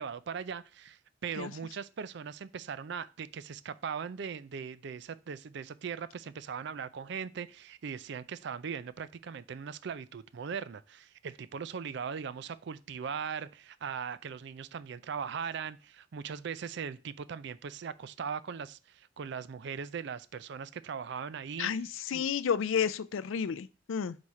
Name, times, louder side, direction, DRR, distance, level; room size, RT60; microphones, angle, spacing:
voice 1, 0.0-21.7 22.1-22.2, right 6 dB, 60° right, 0.4 m, -39 dB
voice 2, 21.6-24.2, left 7 dB, 85° left, 0.4 m, -31 dB
4.7 x 4.2 x 4.8 m
head